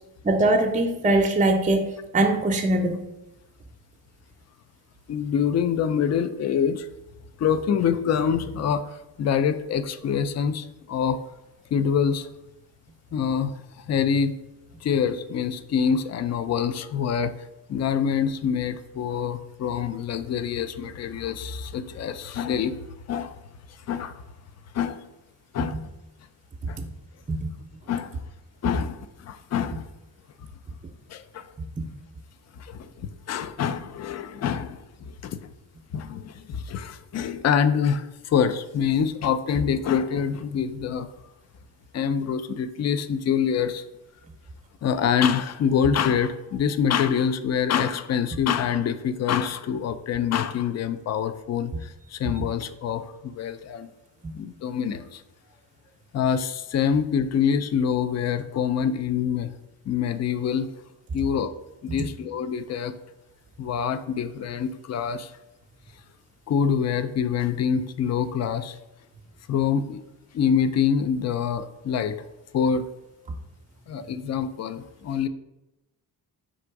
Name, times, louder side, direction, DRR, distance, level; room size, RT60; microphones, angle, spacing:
voice 1, 0.2-3.0 26.8-26.9 27.3-27.5, right 2 dB, 20° right, 4 dB, 0.5 m, -22 dB
voice 2, 5.1-6.9 7.4-11.2 11.7-12.3 13.1-14.3 14.8-17.3 17.7-22.8 23.1-23.4 23.9-24.2 24.7-25.1 25.5-25.9 26.7-26.8 27.9-28.2 28.6-29.9 31.1-31.5 32.6-34.8 35.2-35.4 35.9-41.1 41.9-43.8 44.8-53.9 54.3-55.2 56.1-59.5 59.9-60.7 61.1-61.5 61.8-63.0 63.6-65.3 66.5-68.8 69.5-70.0 70.3-72.2 72.5-72.9 73.9-75.3, left 7 dB, 40° left, 11 dB, 0.4 m, -25 dB
3.8 x 2.5 x 4.6 m, 0.95 s
cardioid pair, 55°, 41 cm